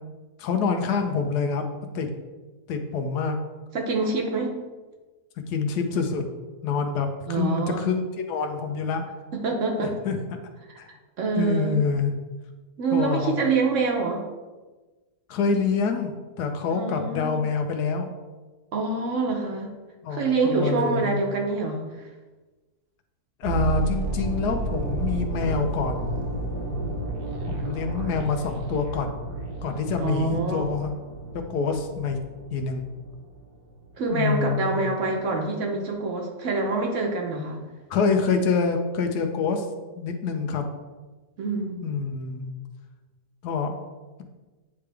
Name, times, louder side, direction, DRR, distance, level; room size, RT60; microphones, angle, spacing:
voice 1, 0.4-1.6 1.9-2.1 2.7-3.4 5.5-6.2 6.6-9.0 9.8-10.4 10.8-10.9 11.4-12.1 12.9-13.4 15.3-18.1 20.0-21.2 23.4-26.1 27.5-29.1 29.6-30.9 31.5-32.2 32.5-32.9 34.1-34.9 37.9-39.7 40.0-40.6 41.8-42.5 43.4-43.7, left 5 dB, 85° left, 5 dB, 1.3 m, -26 dB
voice 2, 3.7-4.6 7.3-7.9 9.3-10.0 11.2-11.8 12.8-14.3 16.7-17.4 18.7-19.7 20.1-22.0 30.0-30.7 34.0-37.6 41.4-41.8, right 3 dB, 55° right, 1 dB, 1.1 m, -26 dB
sound 1, 23.4-33.4 33.7-33.9, right 3 dB, 75° right, 1.5 m, -31 dB
9.4 x 3.4 x 3.4 m, 1.2 s
omnidirectional pair, 1.7 m